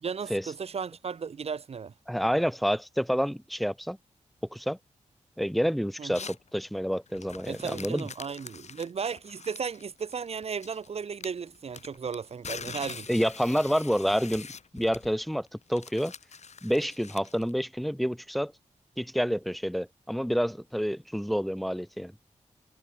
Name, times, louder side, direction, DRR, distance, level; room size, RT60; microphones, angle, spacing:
voice 1, 0.0-1.9 6.0-6.3 7.5-13.1, right 6 dB, 55° right, 0.8 m, -35 dB
voice 2, 2.1-4.0 4.5-4.8 5.4-8.1 13.1-14.5 14.7-16.1 16.6-18.5 19.0-22.1, equal, ahead, 0.9 m, -28 dB
sound 1, 6.1-6.5 7.1-10.9 11.2-17.5, left 6 dB, 65° left, 3.5 m, -44 dB
wide cardioid pair, 100°, 13 cm